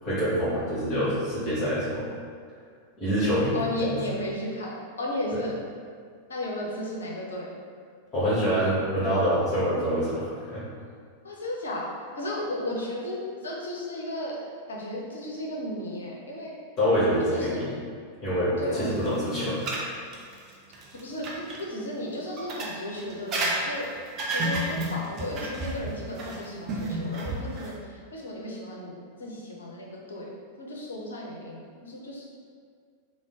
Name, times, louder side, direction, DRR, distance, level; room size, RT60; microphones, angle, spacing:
voice 1, 0.0-2.0 3.0-4.0 8.1-10.6 16.8-17.7 18.2-19.6, equal, 20° left, -12 dB, 1.5 m, -26 dB
voice 2, 3.5-5.5 6.3-7.5 11.2-11.9 12.2-14.4 14.7-16.6 17.2-17.7 18.6-19.0 21.0-23.9 24.3-30.3 30.6-32.3, left 1 dB, 70° left, -3 dB, 0.6 m, -34 dB
sound 1, 18.9-21.6 22.4-27.7, right 1 dB, 35° right, 0.5 m, -31 dB
3.6 x 2.1 x 3.6 m, 2.1 s
figure-of-eight pair, 90°, 0 cm